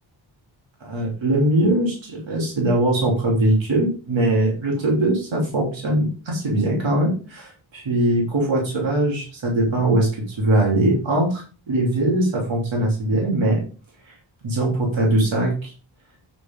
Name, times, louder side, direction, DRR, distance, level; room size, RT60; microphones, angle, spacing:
voice 1, 0.8-13.6 14.1-14.2 14.4-15.7, right 1 dB, 80° right, -3 dB, 3.4 m, -21 dB
9.2 x 6.5 x 3.8 m, 0.36 s
wide cardioid pair, 155°, 46 cm